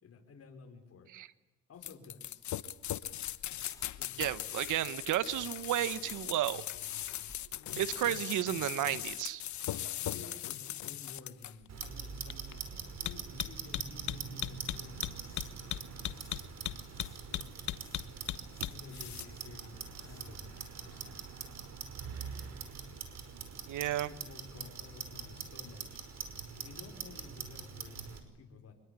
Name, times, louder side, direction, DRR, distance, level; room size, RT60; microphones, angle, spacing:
voice 1, 0.0-1.1 1.7-2.4 4.0-4.2 7.5-7.8 8.2-8.7 9.9-15.8 17.0-17.7 18.6-21.4 24.0-26.0 26.5-28.7, left 4 dB, 50° left, 3 dB, 5.5 m, -53 dB
sound 1, 1.8-19.2, left 12 dB, 70° left, 1.2 m, -39 dB
sound 2, 3.3-10.7 11.0-11.2 14.9-17.3 17.7-20.5, left 2 dB, 10° left, 4.5 m, -58 dB
voice 2, 4.2-6.6 7.8-9.4 23.7-24.1, right 13 dB, 80° right, 15 dB, 1.3 m, -32 dB
Clock, 11.7-28.2, right 6 dB, 60° right, 5.3 m, -44 dB
26.5 x 21.0 x 9.9 m, 1.0 s
cardioid pair, 90°, 30 cm